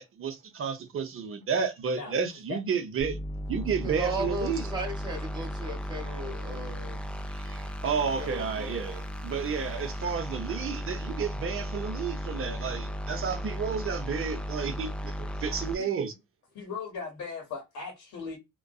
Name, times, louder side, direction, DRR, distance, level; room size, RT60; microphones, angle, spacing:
voice 1, 0.0-3.2 3.5-4.7 7.8-16.1, right 6 dB, 45° right, 0.6 m, -31 dB
sound 1, 3.0-15.7, equal, 5° left, 0.3 m, -35 dB
voice 2, 3.8-7.0 8.2-8.8, right 2 dB, 15° right, 0.8 m, -36 dB
voice 3, 15.5-15.9 16.5-18.4, left 5 dB, 70° left, 0.9 m, -38 dB
2.5 x 2.2 x 2.2 m
cardioid pair, 90°, 30 cm